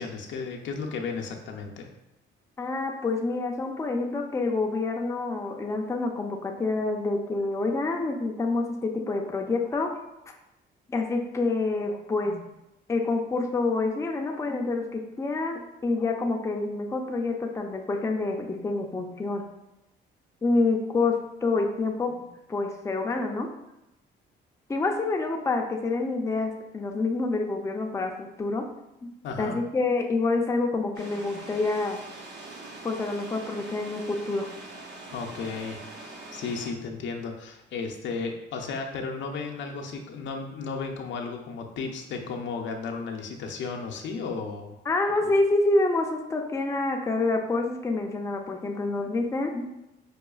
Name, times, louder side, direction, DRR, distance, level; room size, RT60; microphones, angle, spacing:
voice 1, 0.0-1.9 29.2-29.6 35.1-44.8, left 4 dB, 70° left, 2 dB, 0.5 m, -34 dB
voice 2, 2.6-9.9 10.9-12.4 12.9-19.4 20.4-23.5 24.7-28.6 29.0-29.1 29.4-32.0 32.8-34.5 44.9-49.7, left 3 dB, 15° left, 2 dB, 0.4 m, -27 dB
sound 1, 30.9-36.7, right 2 dB, 60° right, 0.7 m, -43 dB
4.8 x 2.3 x 2.3 m, 0.90 s
cardioid pair, 90°, 20 cm